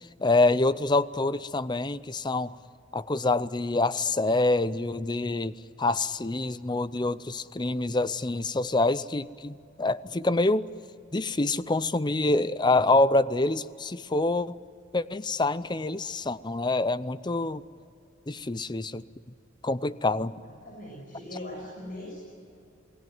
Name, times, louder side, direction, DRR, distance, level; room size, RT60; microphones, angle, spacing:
voice 1, 0.2-2.5 2.9-5.5 5.8-10.7 11.1-14.6 14.9-17.6 18.3-19.0 19.6-20.3, left 2 dB, 25° left, 15 dB, 0.6 m, -26 dB
voice 2, 20.4-22.2, left 1 dB, 45° left, -1 dB, 6.5 m, -40 dB
28.5 x 19.5 x 9.4 m, 2.5 s
head